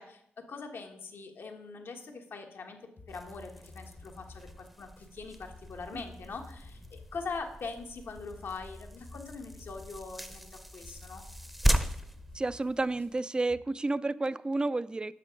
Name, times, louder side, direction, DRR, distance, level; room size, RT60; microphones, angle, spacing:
voice 1, 0.0-2.8 3.1-11.2, left 4 dB, 65° left, 1.4 m, -42 dB
sound 1, 3.0-13.6, left 3 dB, 50° left, 1.2 m, -52 dB
sound 2, 3.1-13.2, equal, ahead, 0.7 m, -37 dB
voice 2, 12.3-15.1, right 2 dB, 20° right, 0.4 m, -31 dB
7.5 x 6.7 x 5.2 m
cardioid pair, 70°, 4 cm